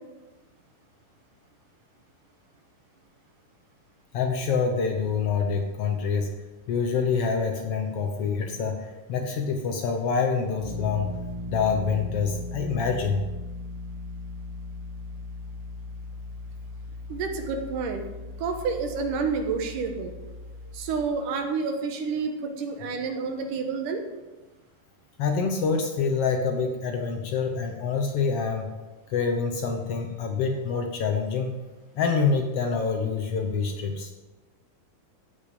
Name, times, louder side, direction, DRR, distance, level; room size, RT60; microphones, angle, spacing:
voice 1, 4.1-6.3 6.7-11.1 11.5-13.2 25.2-28.7 29.1-31.5 32.0-34.1, left 5 dB, 75° left, 4 dB, 1.4 m, -26 dB
sound 1, 10.6-21.1, left 1 dB, 30° right, 2.8 m, -38 dB
voice 2, 17.1-18.0 18.4-20.1 20.7-24.0, right 5 dB, 75° right, 5 dB, 2.6 m, -29 dB
15.0 x 5.5 x 5.2 m, 1.2 s
omnidirectional pair, 3.8 m